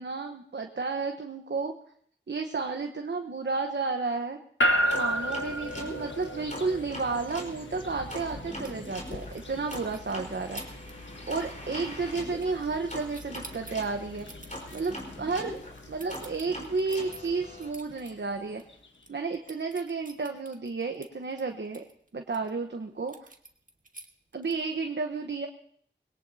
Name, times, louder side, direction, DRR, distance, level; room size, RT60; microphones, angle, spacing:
voice 1, 0.0-1.7 2.3-4.4 4.9-10.6 11.3-14.3 14.7-15.6 15.9-18.6 19.1-21.8 22.1-23.3 24.3-25.5, right 4 dB, 65° right, 4 dB, 1.1 m, -32 dB
sound 1, 4.6-18.9, equal, 75° left, 1.5 m, -35 dB
sound 2, 4.9-7.5 8.1-13.9 14.5-17.7, left 1 dB, 40° left, 4.4 m, -42 dB
sound 3, 8.6-9.5 9.7-10.1 10.6-10.9 11.2-11.5 11.8-12.8 13.1-18.1 18.5-18.6 18.9-22.5 23.1-24.8, right 2 dB, 45° right, 1.7 m, -48 dB
21.0 x 17.5 x 2.8 m, 0.65 s
wide cardioid pair, 45°, 19 cm